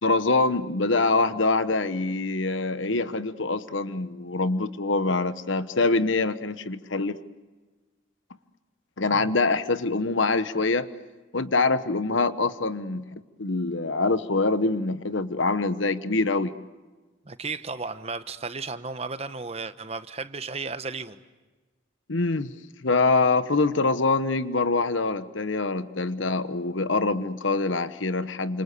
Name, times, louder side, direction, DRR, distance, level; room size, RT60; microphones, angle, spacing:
voice 1, 0.0-7.2 9.0-10.9 11.3-13.1 13.4-16.5 22.1-22.5 22.8-28.6, left 3 dB, 80° left, 13 dB, 1.1 m, -24 dB
voice 2, 17.2-21.2, right 4 dB, 30° right, 11 dB, 1.1 m, -34 dB
29.0 x 27.0 x 6.8 m, 1.3 s
head